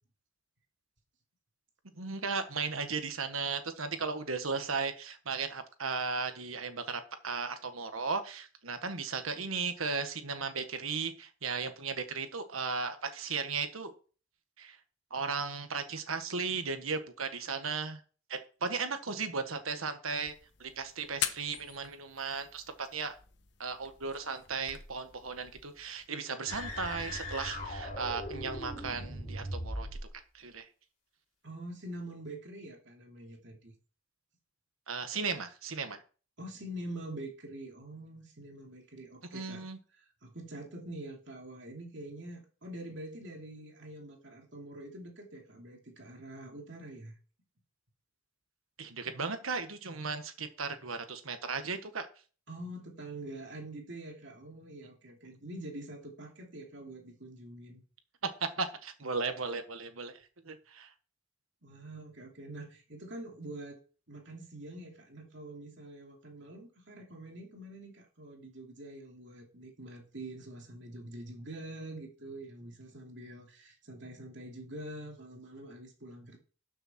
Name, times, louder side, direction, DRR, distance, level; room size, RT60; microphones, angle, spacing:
voice 1, 2.0-14.0 14.6-14.8 15.1-18.0 18.3-20.3 20.6-23.1 23.6-29.9 30.3-30.7 34.9-36.0 39.3-39.8 48.8-52.1 58.6-60.2 60.4-60.9, right 4 dB, 90° right, 8 dB, 1.5 m, -36 dB
sound 1, 20.1-26.1, left 10 dB, 55° left, 1.1 m, -43 dB
sound 2, 26.5-30.1, equal, 35° left, 4.6 m, -39 dB
voice 2, 31.4-33.7 36.4-39.6 40.2-47.1 52.5-57.8 61.6-63.8 64.1-76.4, right 1 dB, 60° right, 1 dB, 2.8 m, -45 dB
12.5 x 6.7 x 4.4 m, 0.39 s
head